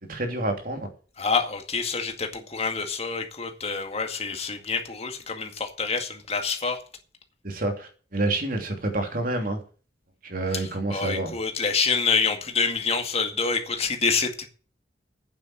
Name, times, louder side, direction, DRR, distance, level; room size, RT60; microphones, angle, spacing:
voice 1, 0.0-0.9 7.4-9.6 10.2-11.3, right 2 dB, 50° right, 2.9 m, -28 dB
voice 2, 1.2-6.8 10.5-14.5, left 5 dB, 35° left, 2.0 m, -27 dB
9.2 x 7.7 x 7.8 m
head